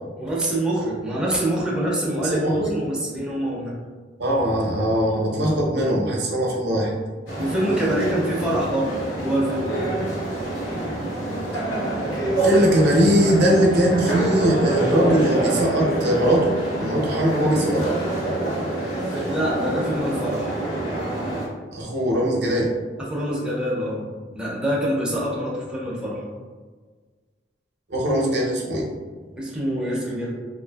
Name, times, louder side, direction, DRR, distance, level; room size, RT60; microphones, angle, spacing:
voice 1, 0.2-2.4 2.7-3.8 7.4-9.7 18.9-20.5 23.0-24.1 24.4-26.2 29.4-30.3, right 1 dB, 5° right, -5 dB, 0.4 m, -25 dB
voice 2, 2.2-2.8 4.2-6.9 12.4-18.0 21.7-22.7 27.9-28.9, equal, 65° right, -2 dB, 0.6 m, -21 dB
sound 1, 7.3-21.5, right 2 dB, 80° left, 1.0 m, -26 dB
2.5 x 2.4 x 2.2 m, 1.5 s
head